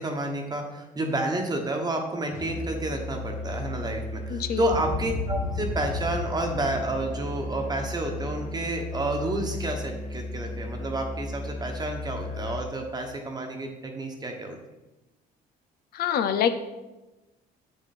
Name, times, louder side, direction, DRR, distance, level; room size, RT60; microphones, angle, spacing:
voice 1, 0.0-14.6, right 2 dB, 25° right, 2 dB, 1.3 m, -30 dB
Musical instrument, 2.3-12.7, left 3 dB, 45° left, 1.4 m, -35 dB
voice 2, 4.3-4.6 15.9-16.6, left 8 dB, 65° left, 10 dB, 0.8 m, -25 dB
Boom, 4.6-8.9, equal, 5° left, 1.7 m, -37 dB
8.0 x 7.7 x 4.3 m, 1.0 s
cardioid pair, 110°, 17 cm